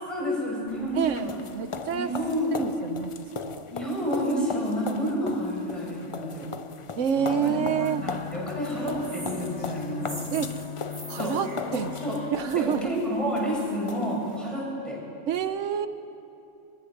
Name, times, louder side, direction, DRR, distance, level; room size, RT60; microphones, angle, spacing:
voice 1, 0.1-1.4 1.9-2.6 3.7-6.5 7.4-7.6 8.0-10.1 11.2-11.4 11.7-12.2 12.5-15.0, equal, ahead, -5 dB, 7.4 m, -29 dB
sound 1, 0.7-14.4, left 5 dB, 35° left, 0.5 m, -39 dB
voice 2, 0.9-2.1 2.5-3.7 7.0-8.1 10.3-10.6 11.1-11.9 12.3-13.0 15.3-15.9, right 8 dB, 90° right, 10 dB, 1.2 m, -28 dB
sound 2, 7.1-12.3, left 8 dB, 70° left, 1.2 m, -38 dB
sound 3, 9.0-12.8, right 1 dB, 45° right, 3.4 m, -44 dB
24.5 x 21.0 x 6.6 m, 2.6 s
omnidirectional pair, 1.2 m